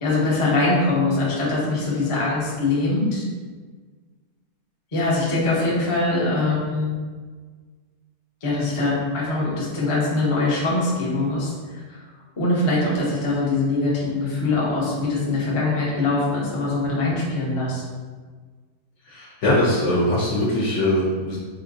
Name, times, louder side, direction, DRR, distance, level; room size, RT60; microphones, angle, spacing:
voice 1, 0.0-3.2 4.9-6.9 8.4-11.5 11.9-12.0 12.4-17.8, left 2 dB, 35° left, -6 dB, 0.5 m, -22 dB
voice 2, 19.1-21.4, left 1 dB, 60° left, -5 dB, 0.9 m, -21 dB
3.8 x 2.7 x 2.5 m, 1.5 s
omnidirectional pair, 1.7 m